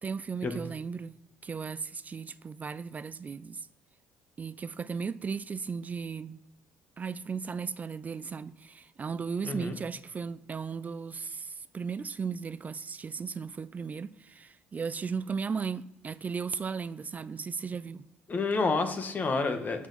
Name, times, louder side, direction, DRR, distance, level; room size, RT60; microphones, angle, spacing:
voice 1, 0.0-1.1 1.4-3.7 4.4-6.4 7.0-18.1, right 5 dB, 35° right, 0.4 m, -36 dB
voice 2, 9.4-9.8 18.3-19.9, left 3 dB, 40° left, 1.4 m, -29 dB
11.5 x 4.6 x 4.2 m
supercardioid pair, 65°, 5 cm